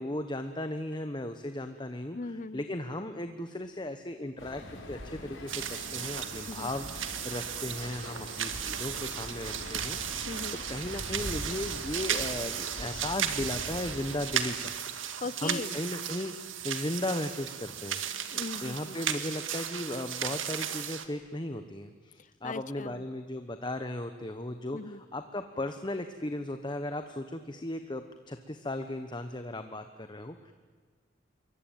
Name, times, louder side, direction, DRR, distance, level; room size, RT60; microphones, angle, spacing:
voice 1, 0.0-2.2 2.5-4.6 4.9-10.3 10.7-18.0 18.6-30.5, left 1 dB, 25° left, 8 dB, 1.1 m, -36 dB
voice 2, 2.1-2.6 6.5-6.7 10.3-10.6 15.2-15.8 18.3-19.0 22.2-23.1 24.7-25.0, left 3 dB, 40° left, 18 dB, 0.7 m, -39 dB
sound 1, 4.4-14.4, left 1 dB, 85° left, 5.6 m, -43 dB
sound 2, 5.5-21.0, right 9 dB, 80° right, 1.9 m, -35 dB
27.5 x 23.5 x 9.3 m, 1.5 s
head